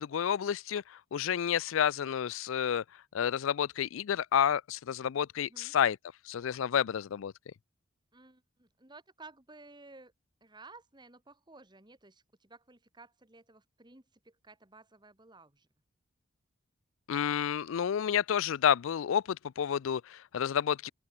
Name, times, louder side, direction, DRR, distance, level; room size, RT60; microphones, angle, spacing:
voice 1, 0.0-2.8 3.1-6.0 6.3-7.3 17.1-20.9, left 8 dB, 70° left, 0.4 m, -30 dB
voice 2, 8.1-10.1 10.4-15.7, right 3 dB, 20° right, 2.3 m, -55 dB
open air
head